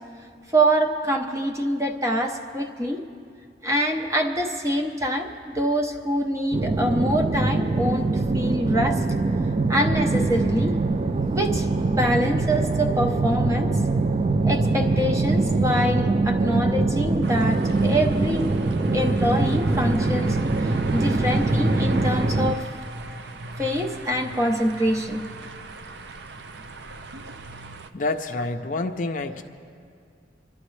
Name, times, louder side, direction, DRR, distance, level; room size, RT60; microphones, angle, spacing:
voice 1, 0.5-3.0 3.6-9.0 9.7-10.8 11.3-11.7 11.9-13.8 14.4-18.5 18.9-22.7 23.6-25.2, equal, 15° right, 2 dB, 0.8 m, -25 dB
sound 1, 6.5-22.5, right 3 dB, 35° right, 0.3 m, -23 dB
sound 2, 17.2-27.9, right 1 dB, 75° right, 0.6 m, -35 dB
voice 2, 27.9-29.4, left 2 dB, 45° left, 5 dB, 0.5 m, -28 dB
26.0 x 12.0 x 3.2 m, 2.3 s
head